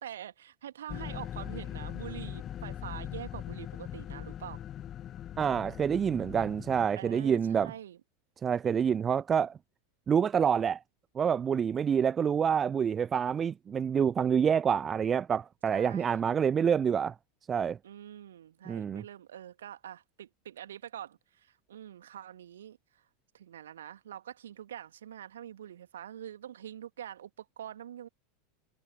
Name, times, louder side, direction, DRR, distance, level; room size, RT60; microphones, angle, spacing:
voice 1, 0.0-4.6 6.9-8.0 8.6-9.0 15.7-16.2 17.8-23.0 23.3-28.1, right 10 dB, 65° right, 2.2 m, -45 dB
sound 1, 0.9-6.9, left 11 dB, 30° left, 0.5 m, -41 dB
voice 2, 5.4-7.7 8.4-9.5 10.1-10.8 11.2-17.1 17.5-17.8 18.7-19.0, right 7 dB, 25° right, 0.4 m, -27 dB
figure-of-eight pair, 85°, 0 cm